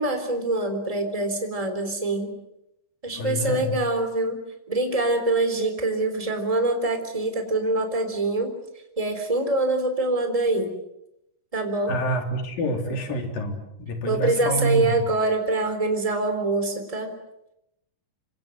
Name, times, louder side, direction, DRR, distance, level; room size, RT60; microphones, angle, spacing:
voice 1, 0.0-2.3 3.0-4.4 4.7-8.5 9.0-10.7 11.5-11.9 12.9-13.0 14.1-17.1, right 2 dB, 10° right, 6 dB, 3.6 m, -24 dB
voice 2, 3.1-3.8 11.9-14.9, equal, 90° left, 4 dB, 5.4 m, -27 dB
27.5 x 25.5 x 8.0 m, 0.83 s
omnidirectional pair, 3.9 m